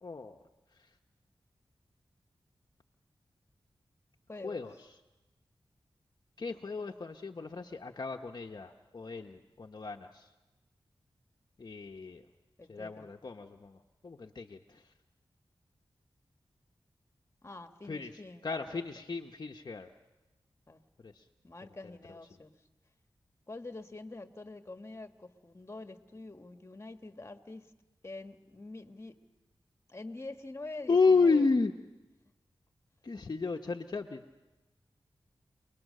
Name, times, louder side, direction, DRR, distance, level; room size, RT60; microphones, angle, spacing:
voice 1, 0.0-0.4 0.7-1.0 4.4-4.9 6.4-10.3 11.6-12.2 12.7-14.9 17.8-19.9 21.0-21.3 22.1-22.2 30.9-31.7 33.0-34.2, left 4 dB, 50° left, 2 dB, 1.0 m, -32 dB
voice 2, 4.3-4.6 12.6-13.1 17.4-18.8 20.7-20.8 21.4-22.5 23.5-27.7 28.0-29.2 29.9-31.4, left 2 dB, 30° left, 7 dB, 1.5 m, -46 dB
29.0 x 20.5 x 6.6 m, 1.1 s
wide cardioid pair, 80°, 9 cm